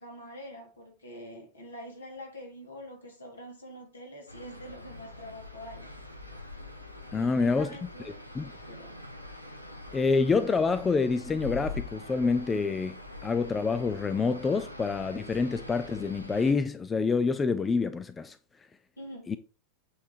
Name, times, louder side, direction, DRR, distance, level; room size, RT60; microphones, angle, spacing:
voice 1, 0.0-5.9 7.2-8.2 8.6-9.0 19.0-19.3, equal, 70° left, 2.4 m, -45 dB
sound 1, 4.3-16.5, left 2 dB, 85° left, 0.9 m, -43 dB
voice 2, 7.1-7.7 8.3-8.5 9.9-13.0 13.2-18.4 19.3-19.4, left 4 dB, 15° left, 0.4 m, -27 dB
8.4 x 3.4 x 4.5 m
figure-of-eight pair, 90°, 0 cm